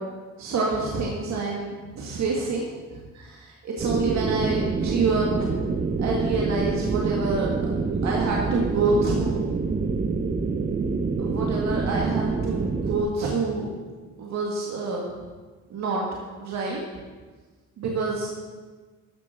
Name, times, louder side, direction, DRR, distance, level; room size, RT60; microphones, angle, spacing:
voice 1, 0.4-5.5 6.0-7.5 8.0-9.4 11.2-13.7 14.2-15.1 15.7-16.0 16.4-16.8 17.8-18.3, right 3 dB, 65° right, -2 dB, 1.9 m, -27 dB
sound 1, 3.8-13.0, right 4 dB, 30° right, 0.9 m, -26 dB
13.5 x 7.0 x 5.9 m, 1.4 s
cardioid pair, 90°, 30 cm